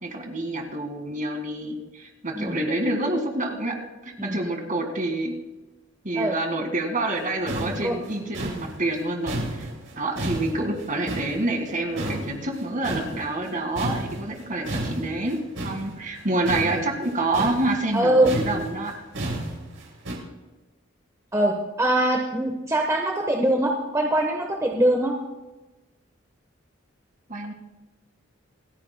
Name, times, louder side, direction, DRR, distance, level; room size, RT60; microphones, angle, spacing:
voice 1, 0.0-5.4 6.0-9.7 10.0-18.9 27.3-27.5, right 2 dB, 40° right, 4 dB, 1.9 m, -27 dB
sound 1, 7.2-7.3 7.5-11.7 12.0-13.5 13.8-20.1, right 1 dB, 90° right, 4.5 m, -32 dB
voice 2, 7.6-8.0 17.9-18.3 21.3-25.1, right 1 dB, 15° right, 1 dB, 1.1 m, -22 dB
28.0 x 10.0 x 2.2 m, 1.1 s
head